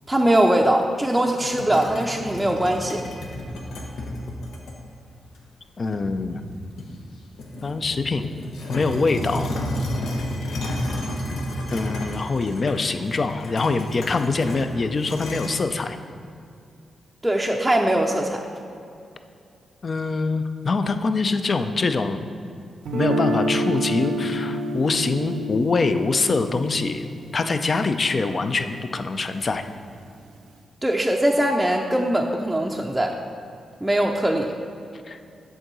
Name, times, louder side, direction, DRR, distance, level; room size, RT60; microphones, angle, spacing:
voice 1, 0.1-3.0 17.2-18.4 30.8-33.2 33.8-34.6, right 1 dB, 10° right, 0 dB, 0.5 m, -21 dB
sound 1, 1.1-4.7 5.3-5.4 5.9-7.0 7.4-15.5, left 1 dB, 90° left, 1.0 m, -32 dB
voice 2, 5.8-6.4 7.6-8.3 8.7-9.5 11.7-16.0 19.8-22.2 22.9-29.6 35.1-35.2, left 3 dB, 45° left, 8 dB, 0.5 m, -24 dB
Guitar, 22.9-28.9, right 1 dB, 85° right, 0.6 m, -28 dB
8.0 x 3.8 x 6.1 m, 2.5 s
cardioid pair, 85°, 0 cm